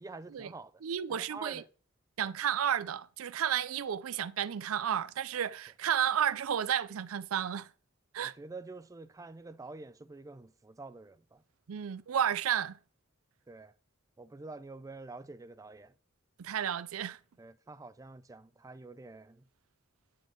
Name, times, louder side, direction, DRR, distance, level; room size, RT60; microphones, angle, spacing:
voice 1, 0.0-0.7 1.1-1.6 2.2-2.3 8.2-11.4 13.5-13.7 14.2-15.9 17.4-19.5, right 3 dB, 15° right, 0.4 m, -47 dB
voice 2, 0.8-1.6 2.2-7.7 8.1-8.3 11.7-12.8 16.4-17.2, right 9 dB, 80° right, 0.4 m, -32 dB
9.4 x 4.5 x 4.6 m
head